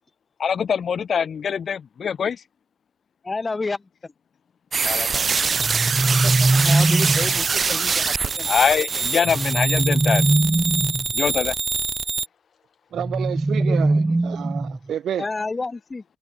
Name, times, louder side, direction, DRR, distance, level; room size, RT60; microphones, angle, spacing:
voice 1, 0.4-2.4 4.8-5.3 8.5-10.3 11.2-11.5, left 7 dB, 50° left, 0.7 m, -23 dB
voice 2, 3.2-4.1 6.2-8.5 13.7-13.8 15.2-16.0, left 3 dB, 25° left, 6.2 m, -30 dB
sound 1, 4.7-12.3, right 5 dB, 40° right, 1.6 m, -24 dB
sound 2, 5.6-7.4 9.2-11.1 13.0-14.9, right 2 dB, 15° right, 0.7 m, -21 dB
voice 3, 12.9-15.2, right 9 dB, 65° right, 0.8 m, -30 dB
cardioid pair, 90°, 0 cm